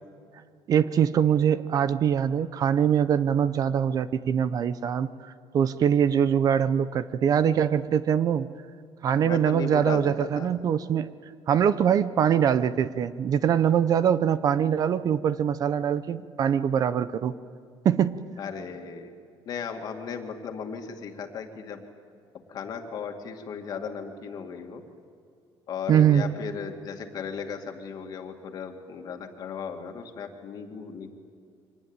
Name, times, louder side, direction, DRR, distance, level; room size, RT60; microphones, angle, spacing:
voice 1, 0.7-8.5 9.0-11.1 11.5-17.4 17.8-18.2 25.9-26.2, right 8 dB, 40° right, 14 dB, 0.6 m, -23 dB
voice 2, 9.2-10.5 18.4-19.1 19.4-21.8 22.5-24.8 25.7-31.1, left 6 dB, 45° left, 4 dB, 2.2 m, -36 dB
24.5 x 19.5 x 8.9 m, 2.3 s
cardioid pair, 160°, 9 cm